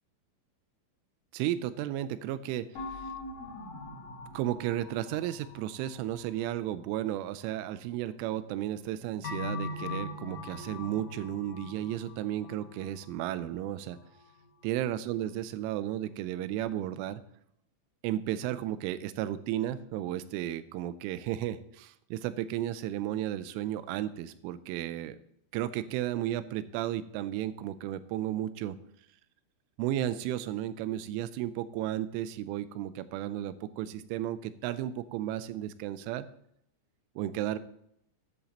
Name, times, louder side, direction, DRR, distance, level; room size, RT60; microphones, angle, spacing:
voice 1, 1.3-3.0 4.3-14.0 14.6-17.2 18.0-25.2 25.5-28.8 29.8-36.3 37.2-37.6, right 12 dB, 90° right, 14 dB, 3.2 m, -34 dB
sound 1, 2.8-7.2 9.2-14.6 15.0-15.1, left 3 dB, 75° left, 1.4 m, -42 dB
12.0 x 10.5 x 2.9 m, 0.72 s
omnidirectional pair, 5.5 m